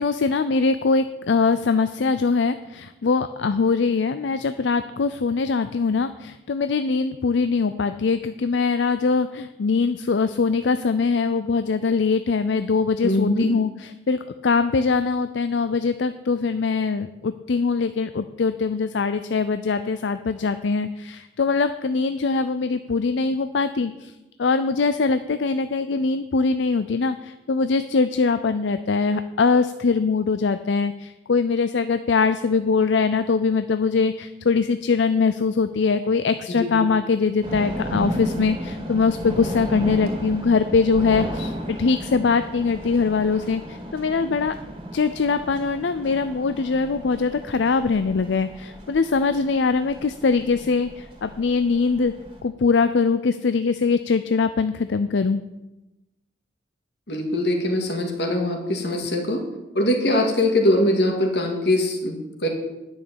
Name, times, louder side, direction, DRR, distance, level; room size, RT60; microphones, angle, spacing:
voice 1, 0.0-24.1 24.4-44.5 44.9-52.1 52.4-55.4, left 4 dB, 80° left, 11 dB, 0.5 m, -22 dB
voice 2, 13.0-13.5 36.6-36.7 57.1-59.4 59.7-62.5, left 1 dB, 65° left, 3 dB, 2.1 m, -22 dB
sound 1, 37.4-52.4, equal, 25° right, 2.1 m, -34 dB
10.0 x 6.4 x 8.8 m, 0.99 s
head